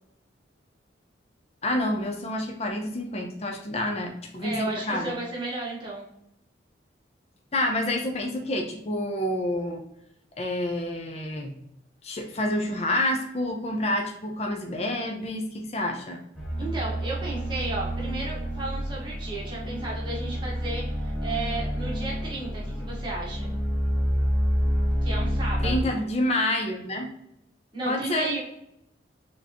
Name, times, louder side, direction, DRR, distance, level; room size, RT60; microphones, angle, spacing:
voice 1, 1.6-5.2 7.5-9.8 10.4-11.5 12.0-16.2 25.6-27.1 27.8-28.3, left 1 dB, 35° left, 2 dB, 0.6 m, -28 dB
voice 2, 4.4-6.1 16.6-23.5 25.0-25.9 27.7-28.4, right 2 dB, 25° right, -5 dB, 1.5 m, -34 dB
sound 1, 16.3-25.8, equal, 5° right, 1.3 m, -28 dB
4.5 x 3.7 x 2.9 m, 0.78 s
head